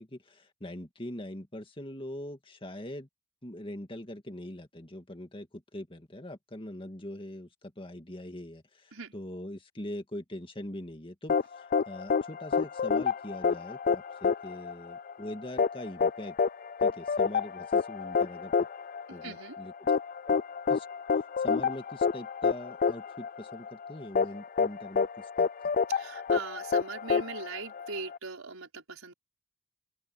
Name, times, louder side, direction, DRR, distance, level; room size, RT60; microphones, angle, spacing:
voice 1, 0.0-3.1 3.4-16.4 16.8-18.5 19.1-20.0 20.3-20.4 20.7-20.9 21.4-25.7, left 1 dB, 25° left, 2.2 m, -42 dB
sound 1, 11.3-28.2, left 5 dB, 40° left, 0.4 m, -28 dB
voice 2, 19.1-19.6 25.9-29.1, right 4 dB, 80° right, 5.2 m, -41 dB
open air
head